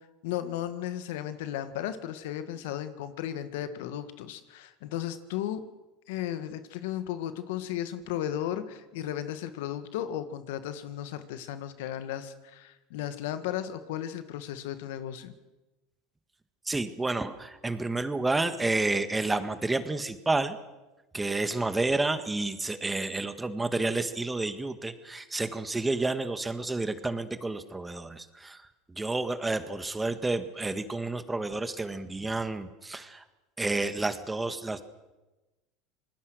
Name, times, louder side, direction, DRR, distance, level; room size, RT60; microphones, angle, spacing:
voice 1, 0.2-5.6 6.1-15.3, left 11 dB, 80° left, 11 dB, 1.7 m, -35 dB
voice 2, 16.7-20.6 21.1-33.2 33.6-34.8, right 2 dB, 15° right, 10 dB, 1.8 m, -30 dB
26.0 x 20.0 x 6.4 m, 1.1 s
supercardioid pair, 95°, 0 cm